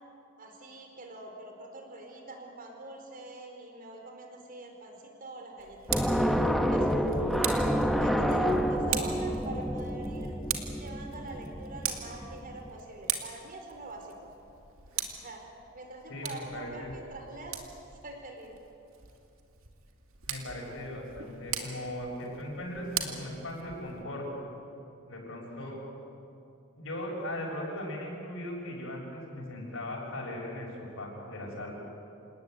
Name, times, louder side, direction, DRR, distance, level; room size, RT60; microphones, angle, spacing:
voice 1, 0.4-6.4 6.7-10.4 10.8-14.3 14.9-15.4 15.7-17.6 17.8-18.6 25.6-25.7, right 2 dB, 45° right, 3 dB, 4.5 m, -45 dB
Tick, 5.6-24.0, right 9 dB, 80° right, 2.5 m, -40 dB
sound 1, 5.9-12.7, equal, ahead, 1.2 m, -29 dB
voice 2, 16.1-16.9 20.2-24.3 25.1-25.8 26.8-31.7, left 1 dB, 70° left, -2 dB, 6.9 m, -38 dB
28.0 x 19.0 x 9.4 m, 2.8 s
head